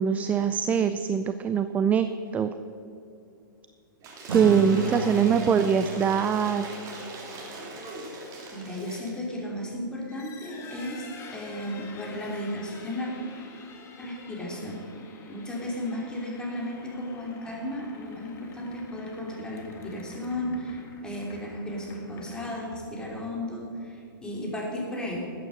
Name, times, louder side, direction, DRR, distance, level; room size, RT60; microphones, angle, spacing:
voice 1, 0.0-2.1 2.3-2.5 4.3-6.7, right 7 dB, 15° right, 11 dB, 0.3 m, -23 dB
Cheering / Applause / Crowd, 4.0-9.2, right 2 dB, 30° right, 2.8 m, -40 dB
sound 1, 4.3-8.9, right 2 dB, 80° right, 1.9 m, -36 dB
voice 2, 4.6-5.5 8.5-13.1 14.0-14.8 15.3-25.3, left 1 dB, 5° left, -3 dB, 3.0 m, -34 dB
sound 2, 9.9-23.4, left 3 dB, 20° left, 1.8 m, -47 dB
13.5 x 8.9 x 6.5 m, 2.6 s
hypercardioid pair, 135°, 12 cm